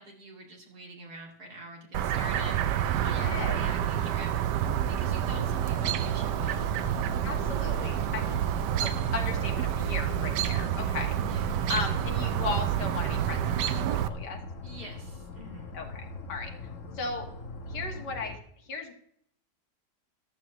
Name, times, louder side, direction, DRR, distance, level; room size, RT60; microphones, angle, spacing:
voice 1, 0.0-4.5 4.9-6.6 11.2-11.6 14.6-15.8, right 1 dB, 65° right, 0 dB, 2.9 m, -45 dB
Chirp tweet, 1.9-14.1, right 10 dB, 85° right, 1.3 m, -28 dB
voice 2, 3.1-3.6 7.2-8.4 8.8-14.4 15.7-16.5 16.9-17.3 17.7-18.9, left 4 dB, 80° left, 3 dB, 2.2 m, -36 dB
sound 1, 4.6-18.4, left 3 dB, 50° left, 1.4 m, -42 dB
14.0 x 12.5 x 3.0 m, 0.69 s
omnidirectional pair, 1.8 m